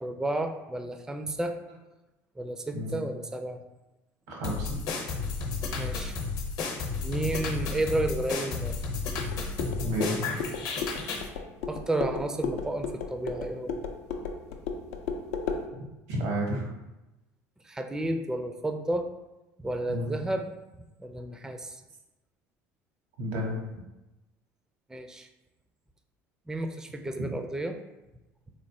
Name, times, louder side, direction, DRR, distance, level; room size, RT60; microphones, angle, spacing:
voice 1, 0.0-1.6 2.4-3.6 5.8-6.2 7.0-8.7 11.7-13.8 17.6-19.1 19.6-20.5 21.0-21.8 24.9-25.3 26.5-27.8, right 1 dB, 10° right, 6 dB, 0.4 m, -32 dB
voice 2, 4.3-4.7 9.8-10.2 15.7-16.7 19.9-20.1 23.2-23.6, equal, 80° right, 0 dB, 1.1 m, -31 dB
sound 1, 4.4-11.3, left 4 dB, 60° left, 0.8 m, -32 dB
sound 2, 9.2-15.6, left 5 dB, 80° left, 0.5 m, -35 dB
3.7 x 3.1 x 2.6 m, 1.0 s
hypercardioid pair, 70°, 8 cm